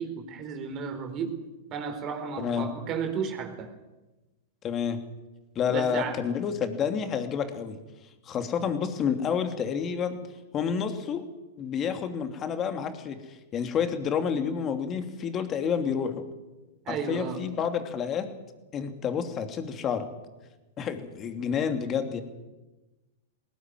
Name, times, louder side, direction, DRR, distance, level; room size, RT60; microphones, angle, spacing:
voice 1, 0.0-1.4 1.7-3.7 5.7-6.2 16.9-17.4, right 6 dB, 35° right, 5 dB, 4.4 m, -33 dB
voice 2, 4.6-5.0 5.5-7.8 8.2-10.2 10.5-11.2 11.6-16.2 16.9-18.3 18.7-20.1 20.8-22.2, left 7 dB, 30° left, 7 dB, 2.8 m, -29 dB
19.5 x 19.0 x 9.4 m, 1.1 s
hypercardioid pair, 115°, 0 cm